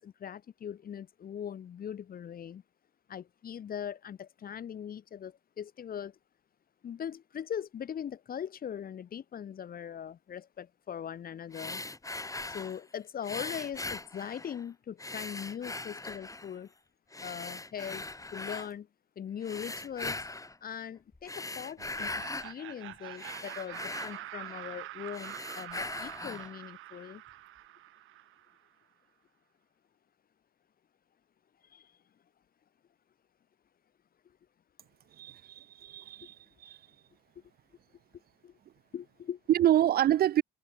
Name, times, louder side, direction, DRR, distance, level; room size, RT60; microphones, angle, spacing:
voice 1, 0.0-2.6 3.1-6.2 6.8-11.8 12.5-16.7 17.2-18.0 18.3-18.9 19.2-20.2 20.6-27.2 31.7-31.9 38.4-38.5 38.9-39.4, left 8 dB, 45° left, 0.8 m, -40 dB
sound 1, 11.5-12.8 13.2-14.6 15.0-16.6 17.1-18.7 19.4-20.6 21.1-22.5 22.9-24.8 25.1-26.5, left 2 dB, 15° left, 3.7 m, -40 dB
Laughter, 21.8-28.6, right 16 dB, 90° right, 3.9 m, -45 dB
voice 2, 35.2-36.3 36.6-36.8 39.5-40.4, right 12 dB, 50° right, 0.4 m, -26 dB
cardioid pair, 90°, 20 cm